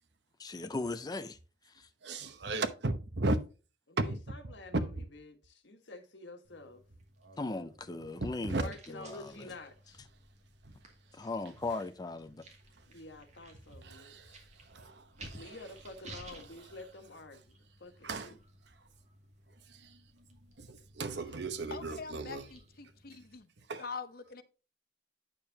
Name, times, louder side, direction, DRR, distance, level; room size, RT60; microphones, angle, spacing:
voice 1, 0.4-1.4 7.4-9.3 11.2-12.4, left 3 dB, 20° left, 0.5 m, -38 dB
voice 2, 2.0-3.4 4.1-4.2 4.9-5.0 7.2-7.4 7.9-8.6 10.7-10.8 13.8-14.4 14.7-15.5 18.0-18.3 19.7-20.0 20.6-22.4 23.7-23.8, right 2 dB, 70° right, 1.0 m, -36 dB
voice 3, 3.9-6.8 8.5-10.0 12.9-14.4 15.3-18.4, left 2 dB, 85° left, 1.5 m, -49 dB
sound 1, 6.4-23.4, right 1 dB, 40° right, 2.3 m, -56 dB
voice 4, 21.7-23.5 23.8-24.4, left 5 dB, 55° left, 0.9 m, -44 dB
8.9 x 6.7 x 2.8 m
head